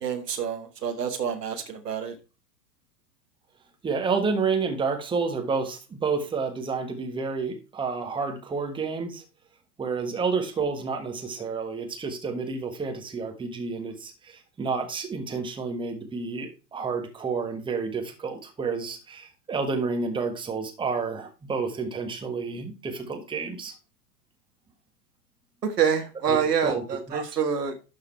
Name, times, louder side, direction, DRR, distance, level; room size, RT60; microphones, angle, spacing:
voice 1, 0.0-2.1 25.6-27.7, right 7 dB, 75° right, 5 dB, 1.6 m, -27 dB
voice 2, 3.8-9.2 9.8-23.7 26.2-26.4 26.6-26.8 27.1-27.2, right 4 dB, 10° right, 4 dB, 1.3 m, -30 dB
12.0 x 4.0 x 4.3 m, 0.31 s
figure-of-eight pair, 100°, 48 cm